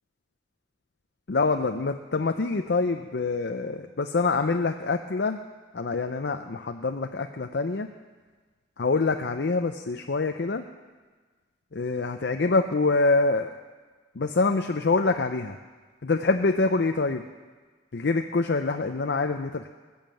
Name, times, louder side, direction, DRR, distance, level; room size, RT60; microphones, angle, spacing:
voice 1, 1.3-5.4 5.7-7.9 8.8-10.6 11.7-13.5 14.1-15.6 16.0-17.3 17.9-19.7, left 3 dB, 60° left, 5 dB, 0.6 m, -25 dB
19.5 x 7.2 x 7.6 m, 1.4 s
head